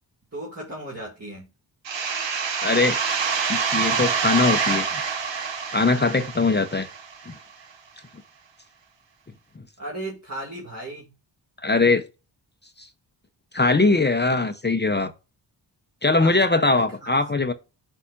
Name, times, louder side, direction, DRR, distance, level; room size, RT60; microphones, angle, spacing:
voice 1, 0.3-1.5 9.8-11.1 16.2-16.3 16.7-17.2, right 1 dB, 35° right, 2.3 m, -35 dB
sound 1, 1.8-7.3, right 6 dB, 75° right, 1.2 m, -26 dB
voice 2, 2.6-3.0 3.5-4.9 5.7-6.9 7.3-7.4 11.6-12.0 12.8-12.9 13.5-15.1 16.0-17.5, left 3 dB, 25° left, 0.7 m, -21 dB
8.4 x 5.6 x 2.5 m
wide cardioid pair, 100°, 44 cm